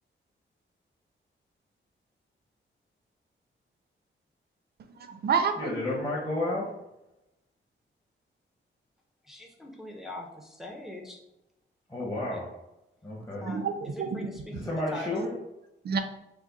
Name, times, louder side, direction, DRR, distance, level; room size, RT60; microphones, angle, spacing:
voice 1, 4.8-5.8 13.4-14.2 15.8-16.0, right 6 dB, 55° right, 8 dB, 0.5 m, -29 dB
voice 2, 5.6-6.7 11.9-12.5 13.0-13.5 14.5-15.3, left 1 dB, 15° left, -6 dB, 1.0 m, -31 dB
voice 3, 9.2-11.2 12.0-12.4 13.4-15.3, left 1 dB, ahead, 0 dB, 0.6 m, -42 dB
5.0 x 2.1 x 4.0 m, 0.91 s
wide cardioid pair, 145°, 20 cm